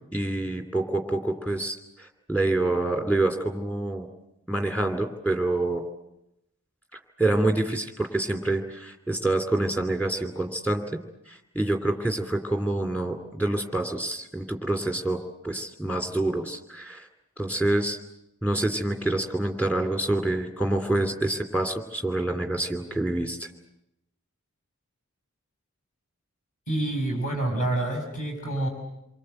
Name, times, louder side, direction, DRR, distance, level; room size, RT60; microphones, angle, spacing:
voice 1, 0.1-4.1 4.5-5.8 7.2-10.8 11.3-17.1 17.4-18.0 18.4-23.5, right 2 dB, 5° left, 6 dB, 2.7 m, -27 dB
voice 2, 26.7-28.7, right 1 dB, 35° left, 2 dB, 6.1 m, -27 dB
28.0 x 23.5 x 7.9 m, 0.86 s
head